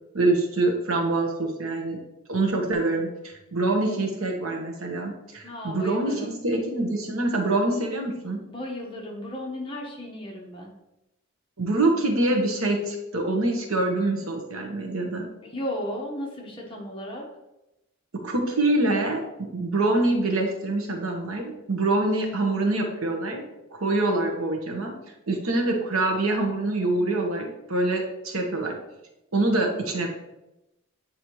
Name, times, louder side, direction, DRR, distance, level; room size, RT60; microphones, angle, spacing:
voice 1, 0.1-2.0 2.3-8.4 11.6-15.3 18.1-23.4 23.7-25.0 25.3-28.8 29.3-30.1, right 2 dB, 90° right, 3 dB, 1.2 m, -25 dB
voice 2, 5.4-6.4 8.5-10.7 15.4-17.2, left 1 dB, 25° left, -1 dB, 1.2 m, -34 dB
8.4 x 4.1 x 3.1 m, 0.93 s
head